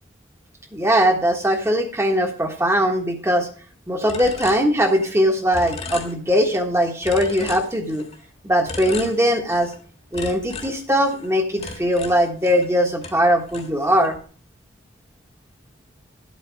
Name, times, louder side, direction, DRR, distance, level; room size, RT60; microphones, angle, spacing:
voice 1, 0.7-3.5 3.9-8.0 8.4-9.7 10.1-14.2, equal, 15° right, 4 dB, 1.4 m, -20 dB
sound 1, 4.1-5.2 5.5-6.6 7.0-8.2 8.7-9.8 10.1-12.7 13.0-14.2, left 3 dB, 35° left, 1.6 m, -36 dB
11.5 x 8.3 x 4.7 m, 0.41 s
head